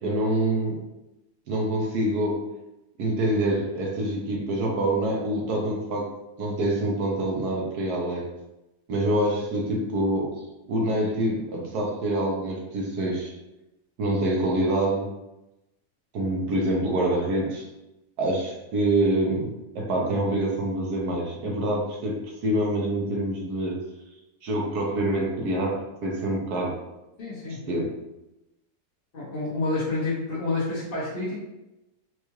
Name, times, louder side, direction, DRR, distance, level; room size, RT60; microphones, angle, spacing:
voice 1, 0.0-0.8 1.5-2.4 3.0-6.1 6.4-8.3 8.9-10.4 10.7-13.3 14.0-15.1 16.1-17.7 18.2-23.8 24.4-26.8 27.7-27.9, right 1 dB, 80° right, -1 dB, 1.3 m, -26 dB
voice 2, 27.2-27.6 29.1-31.4, left 2 dB, 45° left, -9 dB, 1.0 m, -28 dB
4.5 x 2.4 x 3.0 m, 0.95 s
omnidirectional pair, 1.7 m